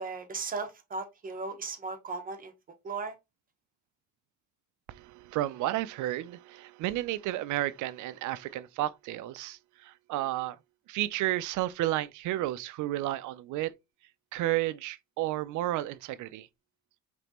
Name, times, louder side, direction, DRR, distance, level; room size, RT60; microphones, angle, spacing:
voice 1, 0.0-2.5 2.8-3.1, right 4 dB, 30° right, 1.1 m, -36 dB
voice 2, 4.9-10.6 10.9-13.7 14.3-16.5, right 15 dB, 90° right, 0.5 m, -32 dB
5.2 x 3.4 x 3.0 m
cardioid pair, 155°, 29 cm